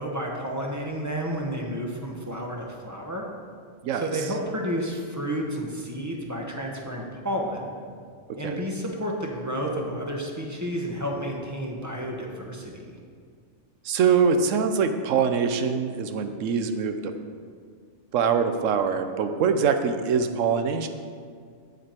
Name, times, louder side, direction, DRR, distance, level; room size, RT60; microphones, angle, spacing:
voice 1, 0.0-3.2 3.9-7.7 8.4-13.0, equal, 15° right, -1 dB, 0.9 m, -31 dB
voice 2, 13.8-17.0 18.1-20.9, right 6 dB, 85° right, 8 dB, 1.0 m, -23 dB
7.7 x 7.6 x 4.4 m, 2.1 s
omnidirectional pair, 1.3 m